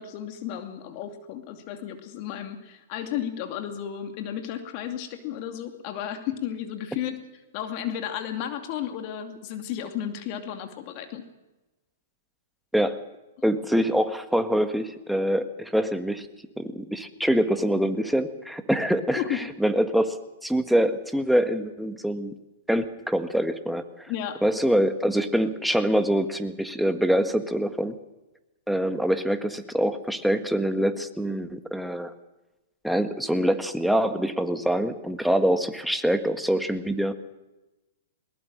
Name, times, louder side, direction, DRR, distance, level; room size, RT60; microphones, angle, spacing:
voice 1, 0.0-7.2 7.5-11.2 19.1-19.4 24.1-24.4, left 10 dB, 45° left, 6 dB, 2.5 m, -33 dB
voice 2, 13.4-16.3 16.6-20.2 20.4-22.3 22.7-23.8 24.4-28.0 28.7-32.1 32.8-37.1, equal, ahead, 8 dB, 1.6 m, -25 dB
21.5 x 20.0 x 6.4 m, 1.1 s
hypercardioid pair, 120°, 0 cm